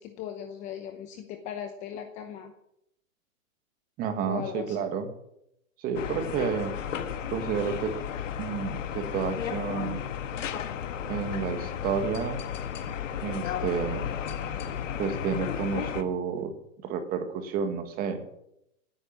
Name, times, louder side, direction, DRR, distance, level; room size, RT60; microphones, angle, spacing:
voice 1, 0.0-2.5 4.3-4.8, left 9 dB, 15° left, 7 dB, 0.8 m, -38 dB
voice 2, 4.0-5.1 5.8-6.7 7.3-7.9 8.4-10.0 11.1-12.4 13.2-14.1 15.0-16.5 16.8-18.2, right 6 dB, 20° right, 7 dB, 1.8 m, -30 dB
sound 1, 5.9-16.0, left 8 dB, 65° left, 1.6 m, -34 dB
16.5 x 9.6 x 7.4 m, 0.79 s
hypercardioid pair, 155°, 41 cm